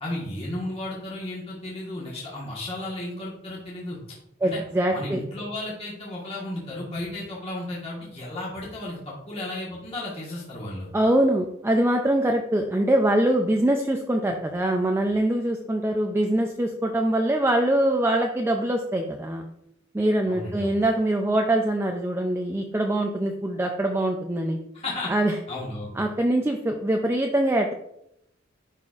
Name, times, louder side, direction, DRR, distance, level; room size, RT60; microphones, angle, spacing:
voice 1, 0.0-4.0 4.4-4.6 4.9-10.9 20.3-20.8 24.7-25.1 25.5-25.9, left 1 dB, 30° left, -5 dB, 1.4 m, -34 dB
voice 2, 4.4-5.2 10.9-19.5 19.9-24.6 25.1-25.4 26.0-27.7, right 1 dB, 10° right, 3 dB, 0.4 m, -23 dB
10.5 x 4.1 x 2.4 m, 0.81 s
head